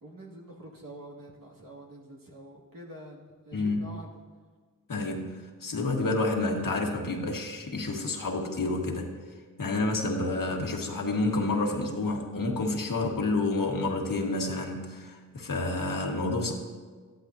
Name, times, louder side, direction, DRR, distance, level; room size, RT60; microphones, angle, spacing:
voice 1, 0.0-4.2, right 1 dB, 75° right, -3 dB, 2.2 m, -46 dB
voice 2, 3.5-3.8 4.9-9.1 9.6-16.5, left 2 dB, 70° left, 1 dB, 1.6 m, -29 dB
14.0 x 11.5 x 2.7 m, 1.5 s
cardioid pair, 45°, 34 cm